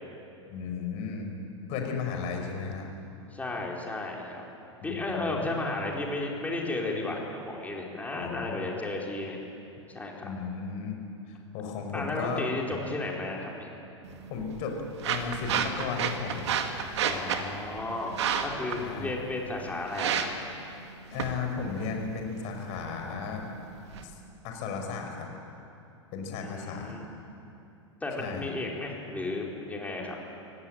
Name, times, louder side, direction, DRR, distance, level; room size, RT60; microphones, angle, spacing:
voice 1, 0.5-1.4 1.7-2.8 4.8-5.3 8.1-8.7 10.2-11.0 11.3-12.8 14.3-14.8 15.0-16.5 18.8-19.2 21.1-23.4 24.0-24.2 24.4-25.3 26.1-27.0 28.2-28.5, left 5 dB, 45° left, 3 dB, 5.3 m, -35 dB
voice 2, 3.3-4.4 4.8-9.4 9.9-10.3 11.9-13.7 17.0-20.3 26.4-27.1 28.0-30.2, left 2 dB, 10° left, -1 dB, 4.7 m, -34 dB
sound 1, 14.0-24.0, right 7 dB, 65° right, 2.2 m, -33 dB
26.0 x 17.5 x 9.1 m, 2.8 s
figure-of-eight pair, 95°, 16 cm